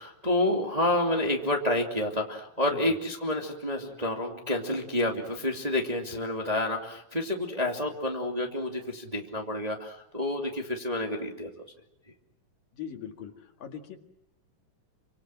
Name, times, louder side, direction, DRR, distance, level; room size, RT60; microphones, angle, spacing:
voice 1, 0.0-11.5, left 1 dB, 15° right, 2 dB, 2.1 m, -29 dB
voice 2, 12.7-14.0, left 8 dB, 70° left, 5 dB, 3.8 m, -41 dB
28.5 x 25.5 x 7.6 m, 0.71 s
omnidirectional pair, 4.2 m